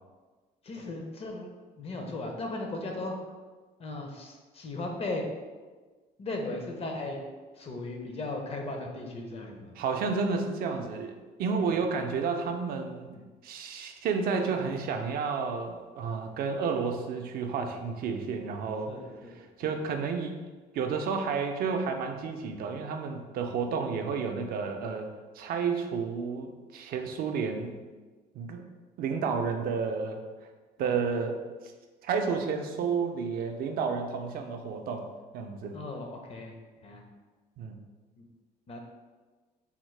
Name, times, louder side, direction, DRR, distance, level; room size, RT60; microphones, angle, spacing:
voice 1, 0.6-1.5 1.8-3.1 3.8-5.2 6.2-7.2 7.6-9.8 11.6-11.8 18.9-19.7 30.8-30.9 35.7-36.5 36.8-37.0 38.2-38.3 38.7-38.8, left 2 dB, 35° left, 2 dB, 0.5 m, -37 dB
voice 2, 9.8-11.1 11.4-18.9 19.2-20.4 20.7-27.8 28.3-28.6 29.0-30.2 30.8-31.4 32.0-35.1 35.3-35.8 37.6-37.8, right 5 dB, 60° right, 5 dB, 0.4 m, -31 dB
3.5 x 2.0 x 3.1 m, 1.3 s
cardioid pair, 110°, 17 cm